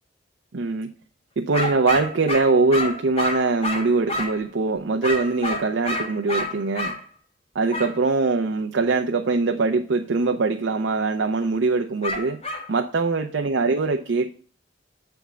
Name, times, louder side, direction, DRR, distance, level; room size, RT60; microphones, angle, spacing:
voice 1, 0.5-0.9 1.4-7.0 7.5-12.4 12.7-14.3, right 3 dB, 90° right, 4 dB, 0.6 m, -22 dB
sound 1, 1.5-4.4 5.0-7.0 7.7-7.9 12.0-12.7, left 1 dB, 35° left, 1.4 m, -28 dB
8.1 x 3.5 x 6.1 m, 0.43 s
head